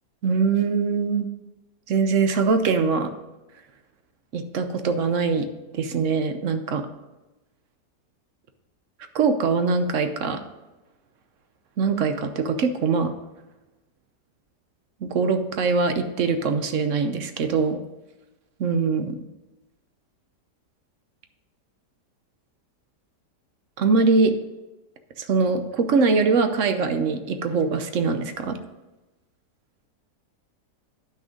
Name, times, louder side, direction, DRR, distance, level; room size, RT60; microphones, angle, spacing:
voice 1, 0.2-1.3 1.9-3.1 4.3-5.5 5.7-6.8 9.1-10.4 11.8-13.1 15.0-17.8 18.6-19.2 23.8-24.3 25.2-28.6, right 4 dB, 60° right, 8 dB, 0.9 m, -22 dB
10.0 x 6.1 x 5.1 m, 1.1 s
omnidirectional pair, 1.8 m